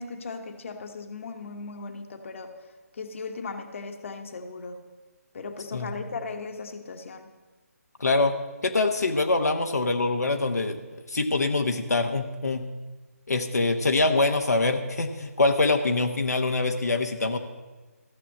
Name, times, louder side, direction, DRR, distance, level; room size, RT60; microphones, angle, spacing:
voice 1, 0.0-2.5 2.9-4.8 5.3-7.3, left 4 dB, 50° left, 6 dB, 1.3 m, -37 dB
voice 2, 8.0-8.3 8.6-10.8 11.1-12.6 13.3-17.4, left 3 dB, 85° left, 5 dB, 1.1 m, -24 dB
14.5 x 7.1 x 7.6 m, 1.3 s
figure-of-eight pair, 150°, 9 cm